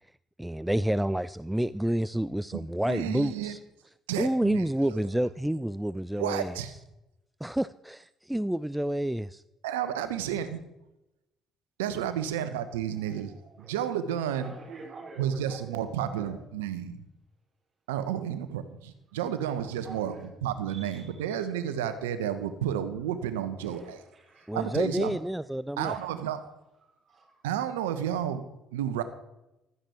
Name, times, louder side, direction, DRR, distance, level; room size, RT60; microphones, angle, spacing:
voice 1, 0.4-3.6 4.2-6.6 7.4-9.4 24.5-25.9, right 1 dB, 5° right, 17 dB, 0.5 m, -29 dB
voice 2, 2.9-3.5 4.1-5.0 6.2-6.7 9.6-10.6 11.8-14.5 15.2-17.0 17.9-20.1 20.4-24.0 24.5-25.2 25.8-26.6 27.4-28.4 28.7-29.0, right 9 dB, 80° right, 11 dB, 1.3 m, -31 dB
voice 3, 13.0-13.7 14.3-16.4 19.2-20.2 20.7-22.2 23.5-24.9 25.8-26.1 26.8-27.5, right 3 dB, 45° right, -3 dB, 5.0 m, -49 dB
15.5 x 13.0 x 4.6 m, 0.91 s
hypercardioid pair, 55°, 0 cm